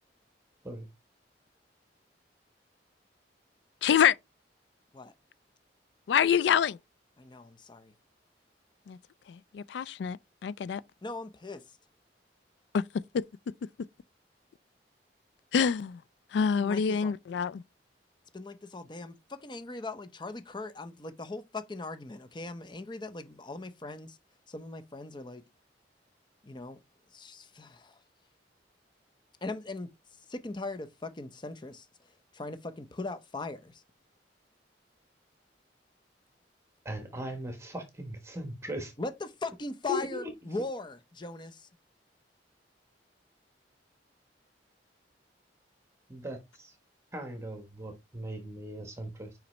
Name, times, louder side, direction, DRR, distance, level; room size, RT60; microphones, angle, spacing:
voice 1, 3.8-4.2 6.1-6.8 8.9-9.0 9.3-10.8 12.7-13.2 15.5-16.0 16.3-17.6, left 7 dB, 70° left, 0.3 m, -26 dB
voice 2, 7.2-7.9 11.0-11.6 16.6-17.1 18.3-24.2 24.5-25.4 26.4-26.8 27.1-28.0 29.4-29.9 30.3-31.9 32.3-33.8 39.0-41.7, left 3 dB, 25° left, 0.6 m, -39 dB
voice 3, 36.8-38.9 39.9-40.2 46.1-46.7 47.1-49.3, equal, 15° right, 1.2 m, -38 dB
5.7 x 5.1 x 3.2 m
head